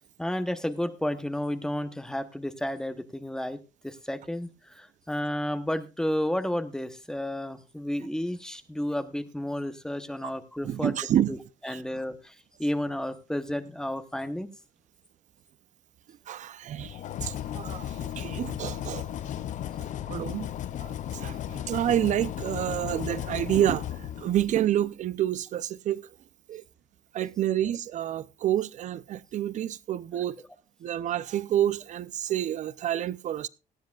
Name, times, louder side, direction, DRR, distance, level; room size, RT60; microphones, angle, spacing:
voice 1, 0.2-11.0 11.3-11.4 11.6-14.5 20.0-20.1, left 1 dB, 5° left, 0.9 m, -32 dB
voice 2, 10.6-11.3 11.7-11.8 16.3-19.1 19.8-20.5 20.8-23.9 24.2-26.0 26.5-26.6 27.1-30.4 30.8-33.5, right 11 dB, 55° right, 0.5 m, -28 dB
sound 1, 16.8-24.7, left 11 dB, 55° left, 0.6 m, -35 dB
18.0 x 13.0 x 2.4 m
cardioid pair, 140°, 15 cm